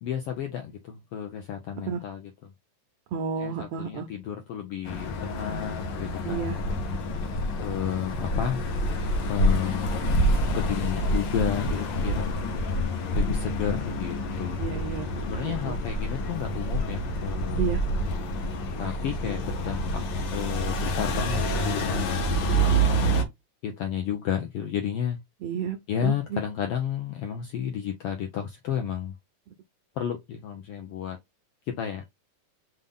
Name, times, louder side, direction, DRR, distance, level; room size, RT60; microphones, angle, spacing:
voice 1, 0.0-2.2 3.4-6.5 7.6-8.6 9.3-9.9 10.6-12.5 13.1-14.6 15.2-17.7 18.8-20.0 20.3-22.7 23.6-25.2 25.9-29.1 30.0-31.2 31.7-32.1, left 9 dB, 85° left, 1.3 m, -32 dB
voice 2, 3.1-4.1 6.2-6.6 14.6-15.8 17.6-17.8 22.5-23.2 25.4-25.8 26.0-26.4, right 7 dB, 80° right, 1.4 m, -32 dB
sound 1, 4.9-23.2, equal, 70° left, 1.1 m, -27 dB
5.7 x 2.5 x 3.5 m
omnidirectional pair, 3.5 m